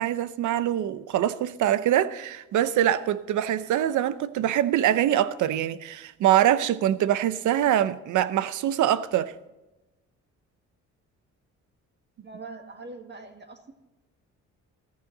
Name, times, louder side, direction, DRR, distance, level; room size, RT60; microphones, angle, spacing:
voice 1, 0.0-9.3, right 11 dB, 80° right, 0.8 m, -24 dB
voice 2, 12.2-13.7, right 3 dB, 35° right, 1.9 m, -42 dB
14.5 x 13.5 x 3.9 m
cardioid pair, 90°, 30 cm